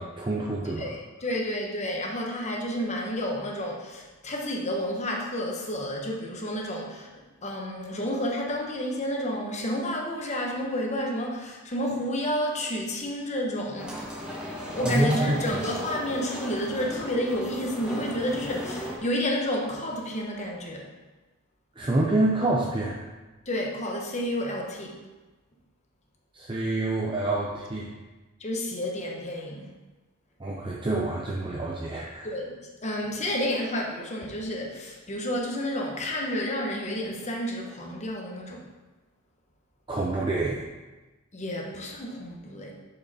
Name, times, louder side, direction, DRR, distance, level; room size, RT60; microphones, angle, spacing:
voice 1, 0.0-0.9 14.8-15.4 21.8-23.0 26.3-27.9 30.4-32.3 39.9-40.6, right 2 dB, 25° right, -3 dB, 0.6 m, -27 dB
voice 2, 0.8-7.1 7.4-14.0 14.7-20.9 23.5-25.0 28.4-29.7 32.2-38.7 41.3-42.7, equal, 35° left, -1 dB, 1.1 m, -30 dB
sound 1, 13.8-19.0, equal, 5° right, 1.3 m, -36 dB
6.5 x 5.4 x 4.1 m, 1.2 s
head